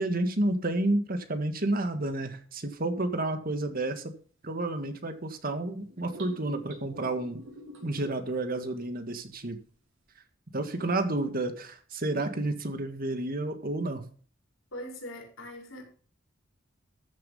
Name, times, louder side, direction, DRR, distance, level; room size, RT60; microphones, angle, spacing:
voice 1, 0.0-4.1 4.4-7.4 7.8-9.6 10.5-14.1, right 2 dB, 45° right, 1.8 m, -30 dB
sound 1, 5.9-8.4, right 1 dB, 85° right, 5.7 m, -46 dB
voice 2, 14.7-15.8, left 1 dB, 85° left, 5.3 m, -41 dB
14.0 x 7.5 x 5.7 m
head